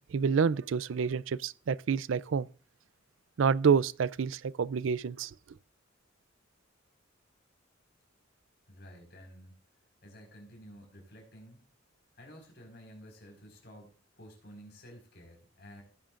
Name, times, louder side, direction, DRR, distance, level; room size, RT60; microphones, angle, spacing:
voice 1, 0.1-2.5 3.4-5.3, right 6 dB, 75° right, 0.4 m, -28 dB
voice 2, 8.7-9.6 10.0-11.6 12.2-15.8, equal, 55° left, 4.8 m, -52 dB
17.0 x 9.0 x 2.5 m
head